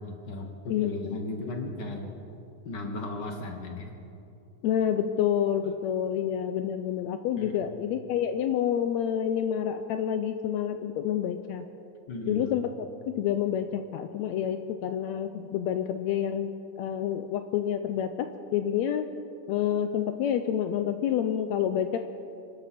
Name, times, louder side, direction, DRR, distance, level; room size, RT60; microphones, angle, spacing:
voice 1, 0.0-2.1 2.6-3.9 5.6-5.7 7.4-7.6 10.9-11.0 12.1-12.5, left 2 dB, 50° left, 3 dB, 1.3 m, -36 dB
voice 2, 0.7-1.2 4.6-11.7 12.3-19.1 19.5-22.1, left 9 dB, 80° left, 8 dB, 1.7 m, -28 dB
26.0 x 12.0 x 4.3 m, 2.7 s
omnidirectional pair, 3.5 m